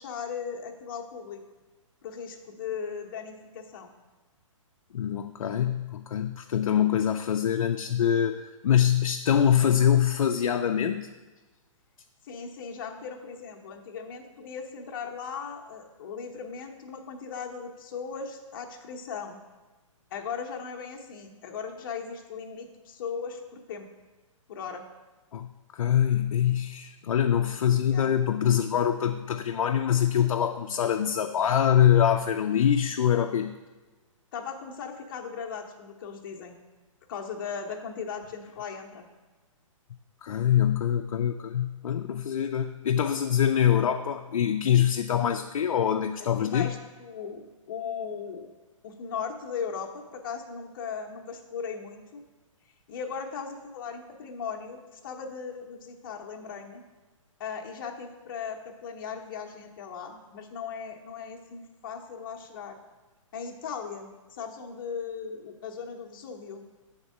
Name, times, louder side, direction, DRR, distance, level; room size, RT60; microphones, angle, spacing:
voice 1, 0.0-1.4 2.0-3.9 12.2-19.4 20.1-23.9 24.5-24.8 27.9-28.1 34.3-36.6 37.1-39.1 46.4-48.5 48.8-52.2 52.9-56.8 57.4-62.8 63.3-66.6, left 6 dB, 40° left, 3 dB, 0.8 m, -38 dB
voice 2, 4.9-11.1 25.3-33.5 40.2-46.7, left 9 dB, 90° left, 5 dB, 0.4 m, -24 dB
7.2 x 3.6 x 5.5 m, 1.2 s
hypercardioid pair, 160°, 17 cm